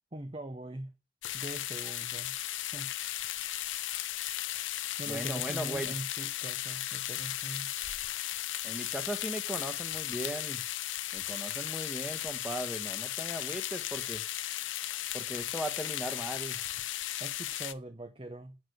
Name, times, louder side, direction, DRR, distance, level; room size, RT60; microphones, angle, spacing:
voice 1, 0.1-0.9 1.3-2.4 2.7-2.9 5.0-7.7 17.2-18.6, right 1 dB, 25° right, 0.7 m, -42 dB
sound 1, 1.2-17.7, left 13 dB, 70° left, 0.6 m, -36 dB
voice 2, 5.1-5.9 8.6-10.6 11.1-14.2 15.1-16.6, right 1 dB, 5° right, 1.3 m, -38 dB
8.0 x 6.4 x 6.4 m
head